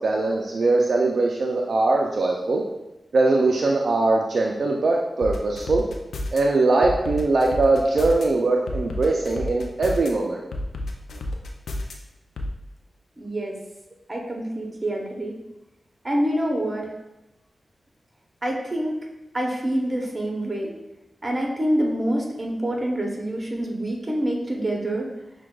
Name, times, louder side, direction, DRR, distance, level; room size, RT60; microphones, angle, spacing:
voice 1, 0.0-2.6 3.1-5.8 6.3-10.4, right 3 dB, 70° right, 0 dB, 0.3 m, -21 dB
sound 1, 5.2-6.4 6.8-8.2 8.7-10.1 10.5-11.9 12.4-12.5, left 1 dB, 85° left, 0.4 m, -30 dB
voice 2, 13.2-13.6 14.1-15.4 16.0-16.9 18.4-19.0 19.3-20.7 21.2-25.1, right 1 dB, 35° right, 0 dB, 0.8 m, -26 dB
5.9 x 2.2 x 2.3 m, 0.96 s
cardioid pair, 50°, 0 cm